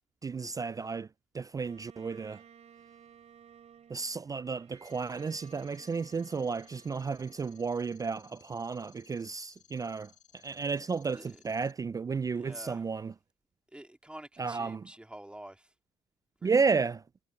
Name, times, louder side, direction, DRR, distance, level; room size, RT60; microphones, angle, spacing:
voice 1, 0.2-1.1 1.3-2.4 3.9-13.1 14.4-14.9 16.4-17.0, right 5 dB, 25° right, 0.3 m, -32 dB
Bowed string instrument, 1.6-8.8, right 8 dB, 55° right, 2.9 m, -58 dB
sound 1, 4.9-11.7, left 9 dB, 65° left, 5.0 m, -62 dB
voice 2, 12.3-12.8 13.7-15.7 16.4-16.7, right 1 dB, 5° right, 2.5 m, -48 dB
supercardioid pair, 70°, 14 cm